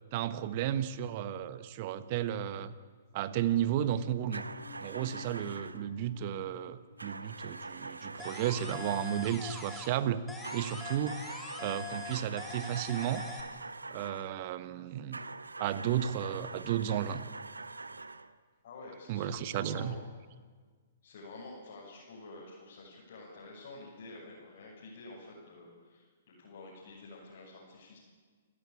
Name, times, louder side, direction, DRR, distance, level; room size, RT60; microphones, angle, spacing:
voice 1, 0.1-2.7 3.1-4.5 4.8-10.2 10.5-11.2 11.6-13.2 13.9-15.2 15.6-17.3 19.1-19.9, right 10 dB, 45° right, 13 dB, 1.3 m, -33 dB
sound 1, 3.4-9.8, left 3 dB, 75° left, 6.8 m, -55 dB
sound 2, 4.3-5.9 7.0-9.4 10.4-14.4 15.1-18.4, right 3 dB, 85° right, 0.9 m, -44 dB
sound 3, 8.2-10.0 10.3-13.4, left 3 dB, 5° left, 3.7 m, -43 dB
voice 2, 18.6-20.0 21.0-28.0, left 2 dB, 60° left, -5 dB, 6.8 m, -49 dB
29.0 x 14.0 x 8.8 m, 1.5 s
figure-of-eight pair, 120°, 0 cm